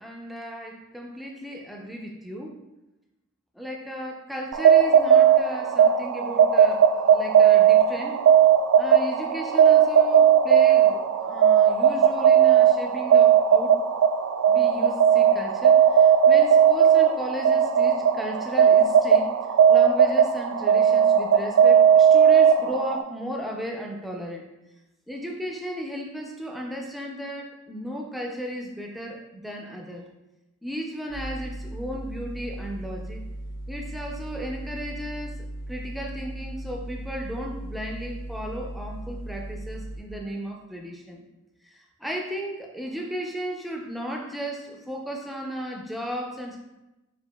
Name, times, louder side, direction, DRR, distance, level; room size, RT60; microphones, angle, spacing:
voice 1, 0.0-2.5 3.6-8.3 8.8-13.8 14.5-19.3 19.7-24.5 25.1-30.1 30.6-33.2 33.7-41.2 41.6-46.6, equal, ahead, 0 dB, 0.4 m, -35 dB
sound 1, 4.5-23.0, right 8 dB, 85° right, 0.3 m, -17 dB
sound 2, 31.1-40.0, right 1 dB, 55° left, 1.3 m, -37 dB
4.7 x 4.4 x 2.2 m, 0.99 s
head